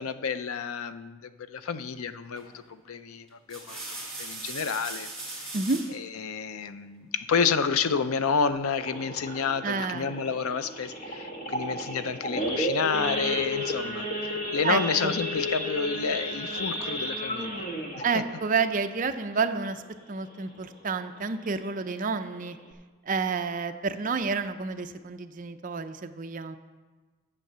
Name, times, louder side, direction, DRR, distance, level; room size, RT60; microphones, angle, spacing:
voice 1, 0.0-3.8 4.2-5.6 5.9-17.7 18.0-18.2, left 5 dB, 80° left, 12 dB, 0.5 m, -30 dB
sound 1, 2.4-2.7 3.3-6.0 7.5-8.1, right 2 dB, 5° left, 2.0 m, -40 dB
Idling / Accelerating revving vroom / Sawing, 8.8-19.9 20.3-20.5 20.8-20.9 21.3-21.6 22.1-22.2 22.4-22.7, equal, 30° left, 1.4 m, -33 dB
voice 2, 9.6-10.1 14.6-15.2 18.0-19.8 20.1-22.6 23.1-26.6, right 4 dB, 40° right, 8 dB, 0.5 m, -29 dB
9.0 x 7.5 x 6.7 m, 1.3 s
head